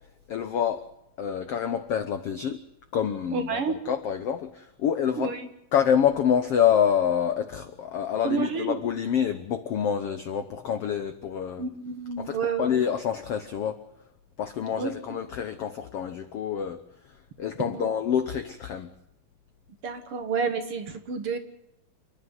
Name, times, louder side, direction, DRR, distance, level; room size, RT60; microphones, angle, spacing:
voice 1, 0.3-0.9 1.2-2.6 2.9-5.4 5.7-11.6 12.2-13.8 14.4-16.8 17.4-18.9, left 8 dB, 90° left, 1.3 m, -27 dB
voice 2, 3.3-3.7 5.2-5.5 8.2-8.8 11.6-12.7 14.8-14.9 17.7-17.9 19.8-21.4, right 5 dB, 50° right, 2.0 m, -29 dB
29.0 x 10.5 x 9.3 m
omnidirectional pair, 4.2 m